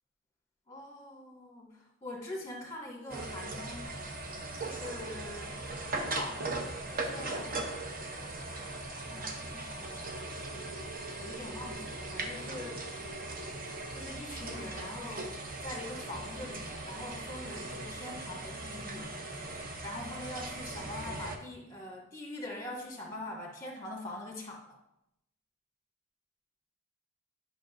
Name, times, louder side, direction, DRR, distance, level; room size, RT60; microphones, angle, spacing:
voice 1, 0.7-3.9 4.6-5.6 5.9-7.7 9.1-10.2 11.1-12.9 13.9-15.3 15.6-19.1 19.8-24.8, left 1 dB, 15° left, -2 dB, 1.7 m, -43 dB
sound 1, 3.1-21.4, right 2 dB, 45° right, 0.8 m, -39 dB
10.5 x 5.8 x 2.5 m, 0.83 s
head